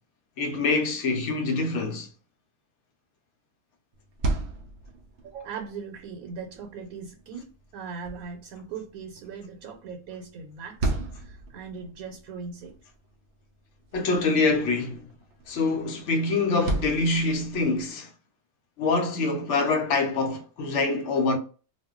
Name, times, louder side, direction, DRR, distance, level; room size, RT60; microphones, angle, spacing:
voice 1, 0.4-2.1 13.9-15.0 15.5-18.1 18.8-21.4, left 3 dB, 65° left, 0.8 m, -25 dB
sound 1, 3.9-17.9, right 2 dB, 65° right, 0.5 m, -37 dB
voice 2, 5.2-12.7, right 5 dB, 90° right, 1.1 m, -39 dB
2.4 x 2.1 x 3.5 m
omnidirectional pair, 1.5 m